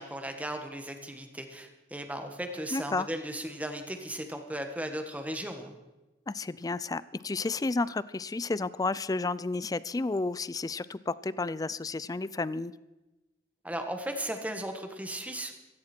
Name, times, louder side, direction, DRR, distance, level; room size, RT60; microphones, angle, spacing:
voice 1, 0.0-5.8 13.6-15.5, right 1 dB, 10° right, 5 dB, 1.5 m, -36 dB
voice 2, 2.7-3.1 6.3-12.7, left 3 dB, 20° left, 18 dB, 0.4 m, -31 dB
16.5 x 15.0 x 4.4 m, 1.0 s
head